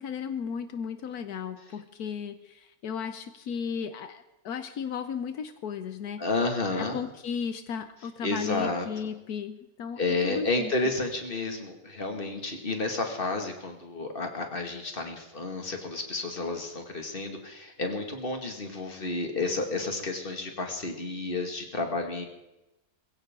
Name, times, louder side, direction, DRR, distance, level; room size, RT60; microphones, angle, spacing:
voice 1, 0.0-6.2 6.7-10.7, left 7 dB, 85° left, 9 dB, 1.4 m, -35 dB
voice 2, 6.2-7.0 8.2-8.9 10.0-22.2, left 3 dB, 35° left, 3 dB, 2.4 m, -31 dB
21.5 x 16.5 x 3.8 m, 0.94 s
omnidirectional pair, 1.6 m